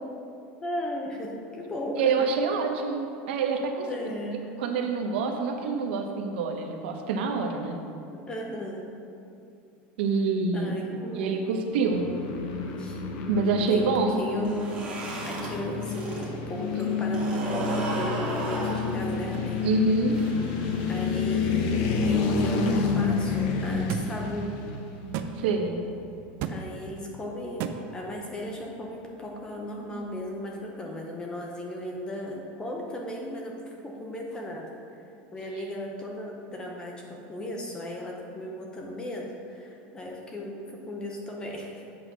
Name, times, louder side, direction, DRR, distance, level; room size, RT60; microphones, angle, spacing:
voice 1, 0.6-2.1 2.5-2.6 3.9-4.5 8.1-8.9 10.5-11.4 12.6-13.0 13.4-14.8 15.3-19.7 20.9-24.5 26.5-34.7 35.3-41.8, equal, 15° left, 0 dB, 0.7 m, -36 dB
voice 2, 2.0-3.9 4.6-7.8 10.0-10.8 11.1-12.0 13.3-14.2 19.6-20.2 25.4-25.8, right 4 dB, 90° right, 3 dB, 0.9 m, -26 dB
sound 1, 11.9-26.1, left 4 dB, 60° left, 0.8 m, -29 dB
sound 2, 14.3-16.3 16.6-21.4, right 1 dB, 20° right, 1.5 m, -35 dB
sound 3, 23.9-24.1 25.1-25.3 26.4-26.6 27.6-27.8, right 10 dB, 50° right, 0.4 m, -30 dB
8.0 x 4.1 x 6.0 m, 2.5 s
supercardioid pair, 165°, 6 cm